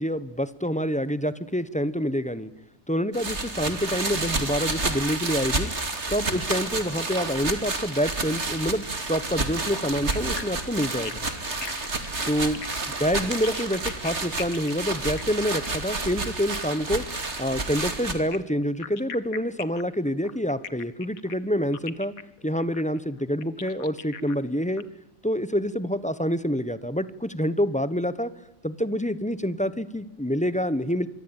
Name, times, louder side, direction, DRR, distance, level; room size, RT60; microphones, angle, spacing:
voice 1, 0.0-2.5 2.9-5.7 6.1-11.2 12.3-12.6 13.0-17.0 17.4-22.1 22.4-24.8 25.2-28.3 28.6-31.1, equal, 5° left, 14 dB, 1.0 m, -27 dB
sound 1, 3.1-18.1, right 3 dB, 55° right, 3.1 m, -30 dB
sound 2, 10.1-16.9 18.1-24.8, left 7 dB, 90° left, 1.7 m, -40 dB
26.0 x 23.5 x 8.9 m, 0.87 s
omnidirectional pair, 1.4 m